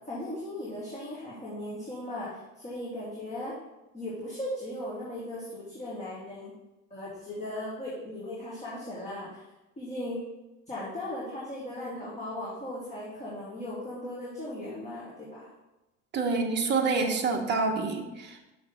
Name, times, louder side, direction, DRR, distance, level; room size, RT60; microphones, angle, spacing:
voice 1, 0.1-3.5 3.9-6.5 6.9-9.4 9.8-10.2 10.7-15.5, left 1 dB, 20° left, -7 dB, 1.8 m, -37 dB
voice 2, 16.1-18.5, right 4 dB, 30° right, 3 dB, 1.0 m, -27 dB
6.0 x 5.5 x 3.6 m, 1.0 s
figure-of-eight pair, 65°, 38 cm